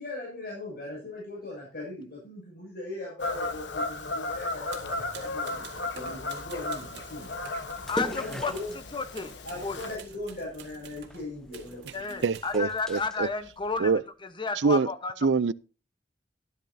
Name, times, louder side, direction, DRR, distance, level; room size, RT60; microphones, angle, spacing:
voice 1, 0.0-5.6 5.9-7.3 8.2-8.7 9.4-12.3, left 2 dB, 55° left, 6.7 m, -39 dB
Fowl / Bird vocalization bird call bird song, 3.2-10.0, left 2 dB, 80° left, 1.2 m, -35 dB
sound 1, 4.7-8.8 9.1-13.1, right 6 dB, 65° right, 2.0 m, -49 dB
sound 2, 7.1-13.9, equal, 5° left, 1.0 m, -42 dB
voice 2, 7.9-8.5 8.9-9.8 11.9-15.1, left 4 dB, 25° left, 1.1 m, -32 dB
voice 3, 12.2-13.3 13.8-14.0 14.6-14.9 15.2-15.5, right 4 dB, 80° right, 0.5 m, -24 dB
12.5 x 12.0 x 2.7 m
head